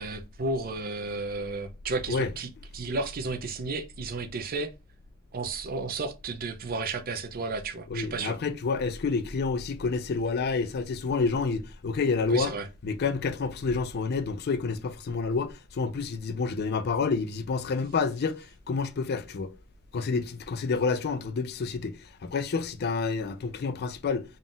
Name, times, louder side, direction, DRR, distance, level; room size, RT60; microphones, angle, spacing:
voice 1, 0.0-4.7 5.3-8.4 12.3-12.7, right 3 dB, 45° right, 0.5 m, -33 dB
voice 2, 7.9-12.5 12.8-19.5 19.9-24.2, left 4 dB, 50° left, 0.4 m, -29 dB
3.8 x 2.4 x 3.8 m
head